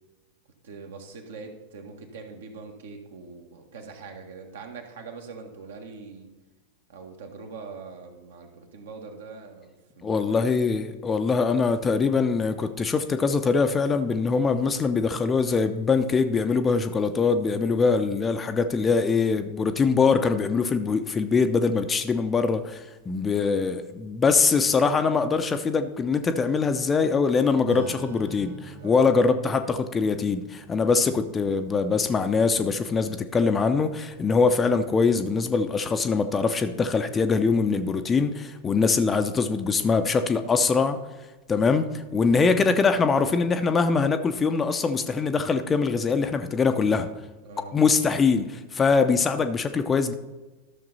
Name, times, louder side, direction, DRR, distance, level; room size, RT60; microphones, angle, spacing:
voice 1, 0.6-6.3 6.9-10.3 28.8-29.1 47.4-47.8, right 4 dB, 60° right, 4 dB, 1.6 m, -42 dB
voice 2, 10.0-41.0 41.5-47.1 47.7-50.1, left 4 dB, 20° left, 8 dB, 0.6 m, -23 dB
Acoustic guitar / Strum, 27.7-33.6, right 2 dB, 85° right, 1.3 m, -45 dB
13.0 x 6.7 x 4.1 m, 1.2 s
figure-of-eight pair, 90°, 0 cm